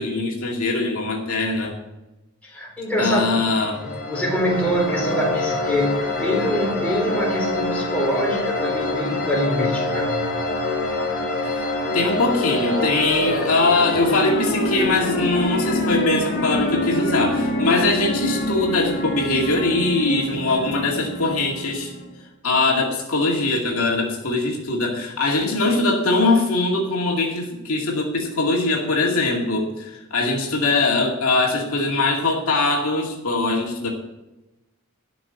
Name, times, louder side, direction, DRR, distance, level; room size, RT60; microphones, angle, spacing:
voice 1, 0.0-1.8 3.0-3.8 11.9-21.9 22.4-33.9, left 2 dB, 70° left, -1 dB, 2.3 m, -21 dB
voice 2, 2.4-3.4 3.8-10.2, equal, 5° left, -3 dB, 4.2 m, -24 dB
sound 1, 3.5-22.1, left 2 dB, 40° left, 4.3 m, -25 dB
12.5 x 6.1 x 8.2 m, 1.0 s
head